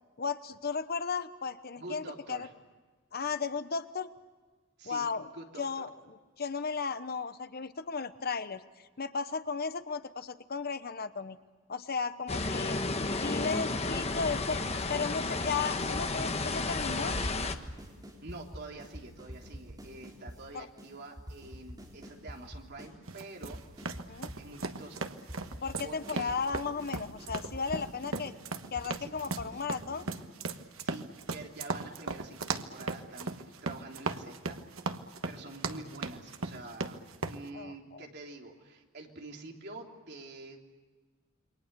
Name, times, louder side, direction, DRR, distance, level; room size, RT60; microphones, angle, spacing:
voice 1, 0.2-2.5 3.1-4.1 4.8-5.3 5.6-5.9 6.4-8.6 9.0-11.4 11.7-12.8 13.2-14.6 14.9-17.2 20.5-20.7 24.1-24.3 25.6-28.3 28.7-30.1 37.5-38.1, left 5 dB, 50° left, 12 dB, 0.9 m, -35 dB
voice 2, 1.7-2.5 4.8-5.1 5.3-5.9 18.2-23.6 24.4-25.1 25.8-26.3 29.0-29.1 30.8-34.9 35.2-40.6, right 2 dB, 55° right, 1 dB, 3.3 m, -47 dB
sound 1, 12.3-17.5, left 3 dB, 30° left, 1.2 m, -32 dB
sound 2, 14.3-14.9 15.2-16.5 16.8-16.9 17.2-20.4 20.8-20.9 21.2-22.9 23.2-24.5 24.8-24.9 25.2-30.3, equal, 20° right, 4.1 m, -46 dB
sound 3, 23.1-37.4, right 3 dB, 90° right, 1.3 m, -37 dB
28.0 x 23.5 x 6.8 m, 1.4 s
head